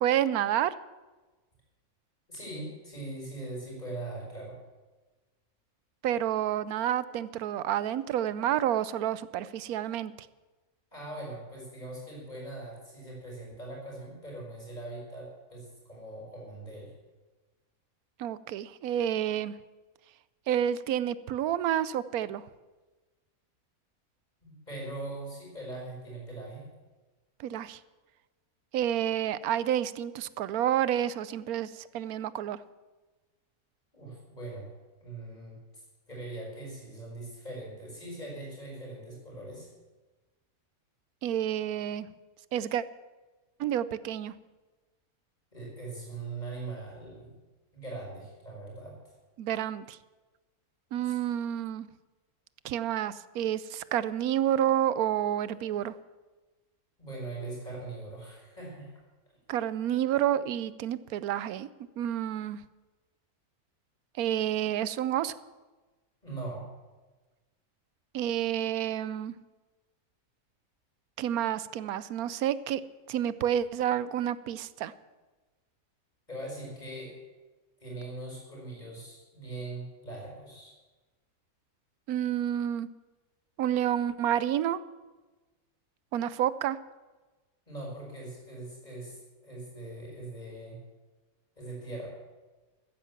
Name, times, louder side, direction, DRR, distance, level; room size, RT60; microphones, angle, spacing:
voice 1, 0.0-0.7 6.0-10.1 18.2-19.5 20.5-22.4 27.4-27.8 28.7-32.6 41.2-42.1 42.5-42.8 43.6-44.3 49.4-50.0 50.9-51.9 52.6-55.9 59.5-61.7 62.0-62.6 64.2-65.4 68.1-69.3 71.2-72.8 73.1-74.9 82.1-82.9 83.6-84.8 86.1-86.8, right 10 dB, 85° right, 17 dB, 1.1 m, -29 dB
voice 2, 2.3-4.6 10.9-16.9 24.4-26.7 33.9-34.7 35.0-35.5 36.1-39.7 45.5-47.3 47.7-49.0 57.0-58.9 66.2-66.7 76.3-77.1 77.8-80.7 87.7-90.8 91.6-92.1, right 2 dB, 30° left, -3 dB, 5.7 m, -41 dB
14.0 x 10.5 x 7.2 m, 1.2 s
omnidirectional pair, 1.5 m